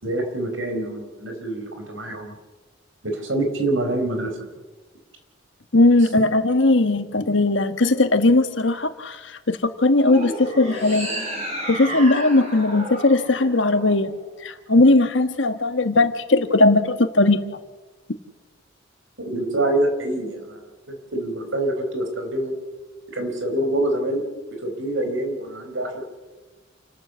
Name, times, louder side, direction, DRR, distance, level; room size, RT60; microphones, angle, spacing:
voice 1, 0.0-2.3 3.0-4.4 19.2-22.5 23.1-24.3 24.6-26.0, right 1 dB, 80° right, 5 dB, 4.8 m, -26 dB
voice 2, 5.7-11.1 11.7-14.1 14.4-17.4, left 2 dB, 65° left, 9 dB, 1.6 m, -18 dB
sound 1, 10.0-14.3, right 1 dB, 35° right, 6.9 m, -32 dB
28.0 x 13.0 x 8.2 m, 1.2 s
head